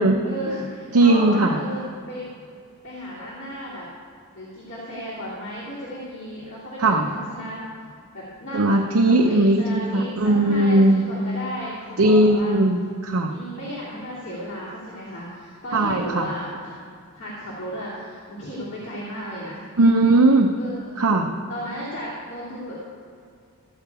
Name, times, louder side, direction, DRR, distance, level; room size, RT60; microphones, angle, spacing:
voice 1, 0.2-1.8 2.1-2.3 2.8-3.9 4.3-7.6 8.1-8.8 9.2-12.5 13.3-16.8 17.1-19.6 20.5-20.9 21.5-22.8, equal, 55° left, -9 dB, 2.8 m, -34 dB
voice 2, 0.9-1.6 6.8-7.1 8.5-11.0 12.0-13.3 15.7-16.3 19.8-20.5 21.0-21.3, right 2 dB, 70° right, 2 dB, 0.8 m, -18 dB
14.5 x 8.4 x 4.8 m, 2.4 s
head